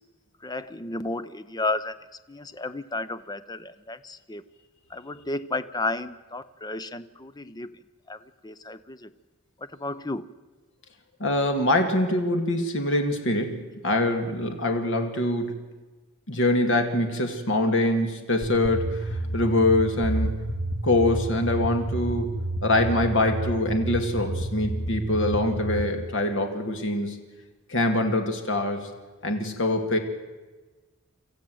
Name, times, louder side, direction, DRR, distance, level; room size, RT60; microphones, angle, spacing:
voice 1, 0.4-2.0 2.3-4.5 4.9-7.7 8.1-9.1 9.6-10.3, left 2 dB, 20° left, 14 dB, 0.6 m, -33 dB
voice 2, 11.2-15.6 16.3-20.4 20.8-22.3 22.6-27.2 27.7-28.9 29.2-30.0, left 1 dB, 60° left, 5 dB, 2.2 m, -24 dB
sound 1, 18.4-25.8, right 1 dB, 90° left, 1.9 m, -30 dB
26.0 x 14.5 x 7.8 m, 1.3 s
head